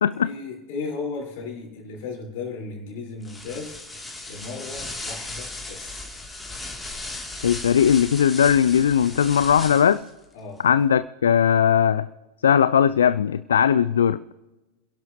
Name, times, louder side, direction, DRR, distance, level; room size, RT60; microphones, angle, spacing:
voice 1, 0.2-3.7 4.3-6.1 10.3-10.6, left 4 dB, 50° left, -1 dB, 4.7 m, -35 dB
sound 1, 3.2-10.1, left 2 dB, 10° left, 2.9 m, -36 dB
voice 2, 7.4-10.0 10.6-12.1 12.4-14.2, left 8 dB, 65° left, 17 dB, 0.3 m, -19 dB
29.5 x 11.0 x 3.0 m, 1.1 s
figure-of-eight pair, 90°, 0 cm